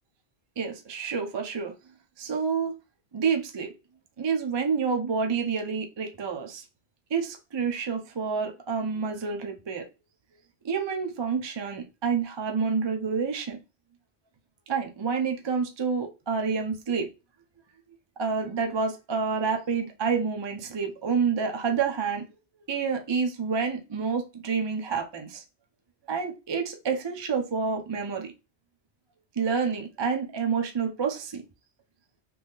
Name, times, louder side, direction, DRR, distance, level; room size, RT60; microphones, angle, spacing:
voice 1, 0.6-1.7 2.2-2.8 3.1-3.7 4.2-6.6 7.1-9.8 10.6-13.6 14.7-17.1 18.2-22.2 22.7-25.4 26.1-28.3 29.4-31.4, right 5 dB, 45° right, 0.3 m, -28 dB
2.9 x 2.7 x 3.5 m
omnidirectional pair, 1.2 m